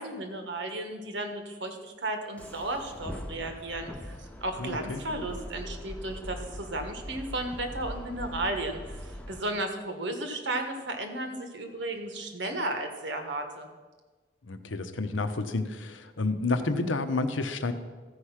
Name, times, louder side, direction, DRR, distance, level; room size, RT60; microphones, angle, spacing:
voice 1, 0.0-13.7, right 2 dB, 65° right, 6 dB, 1.3 m, -34 dB
sound 1, 2.4-9.4, equal, 5° left, 0.6 m, -41 dB
voice 2, 4.6-5.0 14.5-17.7, left 3 dB, 85° left, 9 dB, 0.8 m, -30 dB
14.0 x 4.9 x 5.8 m, 1.4 s
head